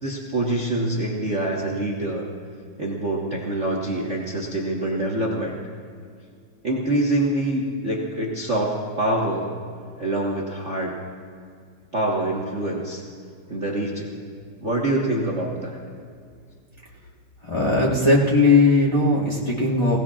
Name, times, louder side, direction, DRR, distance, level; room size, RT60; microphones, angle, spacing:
voice 1, 0.0-2.2 2.8-5.6 6.6-9.5 10.0-10.9 11.9-13.0 13.5-14.1 14.6-15.8, right 1 dB, 50° right, -3 dB, 0.8 m, -25 dB
voice 2, 17.4-20.0, left 2 dB, 30° left, -6 dB, 0.5 m, -18 dB
21.5 x 17.5 x 2.4 m, 2.2 s
omnidirectional pair, 3.4 m